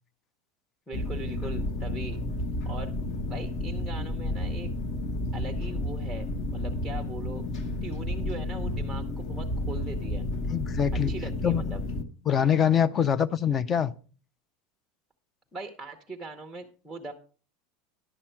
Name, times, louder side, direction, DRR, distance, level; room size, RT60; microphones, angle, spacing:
sound 1, 0.9-12.0, left 1 dB, 40° left, 1.1 m, -31 dB
voice 1, 0.9-2.2 2.7-2.9 3.2-4.7 5.3-7.4 7.8-10.3 10.9-11.8 15.5-17.1, right 2 dB, ahead, 0.8 m, -40 dB
voice 2, 10.5-11.1 11.4-11.6 12.3-13.9, left 8 dB, 20° left, 0.4 m, -24 dB
11.0 x 7.4 x 4.5 m
supercardioid pair, 170°, 0 cm